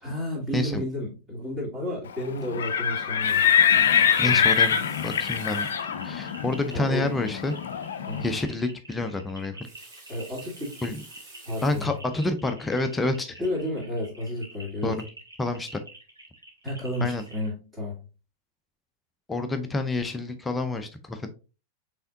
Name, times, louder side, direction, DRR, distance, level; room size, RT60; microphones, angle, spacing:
voice 1, 0.0-3.5 4.1-4.4 6.7-7.1 8.1-8.3 10.1-10.8 11.5-11.9 13.4-14.9 16.6-18.0, left 1 dB, 20° right, -6 dB, 2.3 m, -32 dB
voice 2, 0.5-0.8 4.2-4.7 5.0-5.7 6.0-7.6 8.2-9.7 10.8-11.0 11.6-13.3 14.8-15.0 15.4-15.8 17.0-17.3 19.3-21.3, left 2 dB, 10° left, 7 dB, 0.5 m, -28 dB
Livestock farm animals working animals, 2.4-8.3, left 8 dB, 65° left, 0.5 m, -23 dB
Water tap faucet, 3.0-5.9 6.7-6.8 7.1-7.2 9.4-12.0 12.7-12.9, right 2 dB, 45° right, 2.5 m, -49 dB
sound 1, 5.4-17.5, right 1 dB, 80° right, 1.9 m, -48 dB
5.5 x 3.5 x 2.6 m, 0.32 s
figure-of-eight pair, 90°, 0 cm